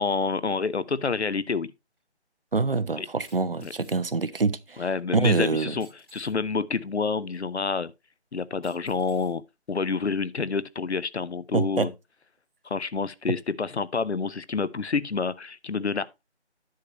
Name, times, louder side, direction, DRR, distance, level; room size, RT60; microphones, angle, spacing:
voice 1, 0.0-1.7 3.0-3.1 3.6-3.7 4.8-7.9 8.3-9.4 9.7-11.9 12.6-16.2, left 4 dB, 70° left, 0.7 m, -28 dB
sound 1, 2.0-2.1 3.2-4.0 5.8-6.3 7.3-7.4 8.6-9.3 10.1-10.2, right 1 dB, 5° left, 4.7 m, -56 dB
voice 2, 2.5-4.8 5.1-5.7 11.5-11.9, right 4 dB, 55° right, 0.6 m, -25 dB
10.5 x 6.6 x 3.0 m
figure-of-eight pair, 165°, 34 cm